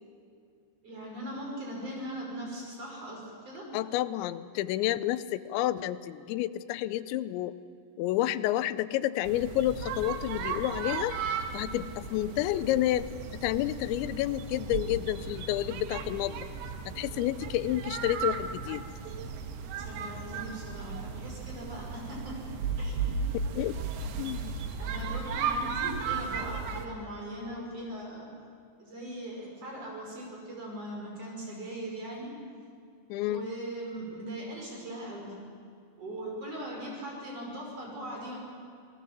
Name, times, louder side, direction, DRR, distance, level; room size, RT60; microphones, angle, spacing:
voice 1, 0.8-3.7 19.8-22.4 22.8-23.1 24.0-24.1 24.8-28.3 28.8-32.3 33.3-35.3 36.0-38.4, right 1 dB, 35° right, -2 dB, 6.2 m, -40 dB
voice 2, 3.7-7.5 8.0-11.1 11.5-16.5 16.9-18.8 23.6-23.7 24.2-24.5 33.1-33.5, left 14 dB, 85° left, 14 dB, 3.0 m, -30 dB
sound 1, 9.2-26.9, right 5 dB, 70° right, 3.0 m, -35 dB
27.5 x 18.0 x 7.5 m, 2.3 s
omnidirectional pair, 5.1 m